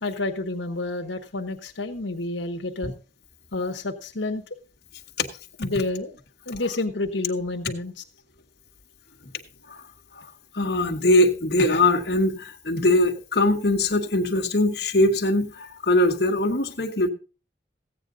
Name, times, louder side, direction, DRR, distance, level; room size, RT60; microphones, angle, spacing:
voice 1, 0.0-2.9 3.5-4.4 5.6-6.1 6.5-8.0, left 2 dB, 90° left, 4 dB, 1.2 m, -29 dB
voice 2, 10.5-17.1, left 1 dB, 60° left, 2 dB, 1.4 m, -21 dB
15.0 x 9.1 x 3.9 m, 0.35 s
head